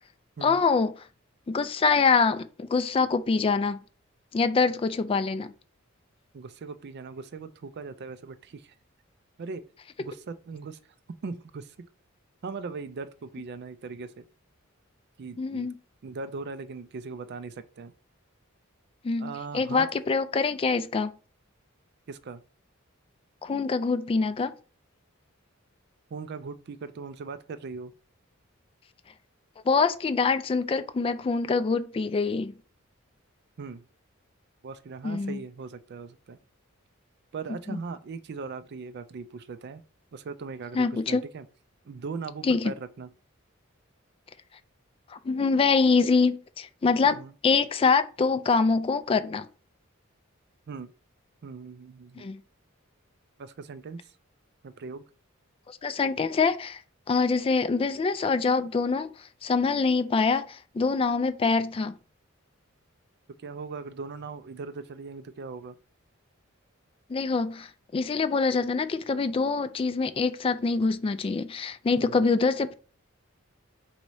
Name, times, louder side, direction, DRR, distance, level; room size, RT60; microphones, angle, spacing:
voice 1, 0.4-0.9 1.5-3.8 4.3-5.5 15.4-15.7 19.0-21.1 23.4-24.5 29.7-32.5 35.0-35.4 40.7-41.2 42.4-42.7 45.1-49.4 52.2-52.4 55.7-56.8 57.1-59.1 59.4-61.9 67.1-72.7, left 4 dB, 25° left, 0.3 m, -25 dB
voice 2, 6.3-8.7 9.4-9.6 10.0-10.8 11.2-11.9 12.4-14.2 15.2-15.7 16.0-17.9 19.2-19.9 22.1-22.4 26.1-27.9 33.6-33.8 34.6-36.4 37.3-39.8 40.1-41.5 41.8-43.1 47.0-47.3 50.7-50.9 51.4-52.3 53.4-54.1 54.6-55.0 63.4-65.8 72.0-72.2, right 4 dB, 55° right, 0.4 m, -39 dB
4.1 x 2.8 x 4.7 m
head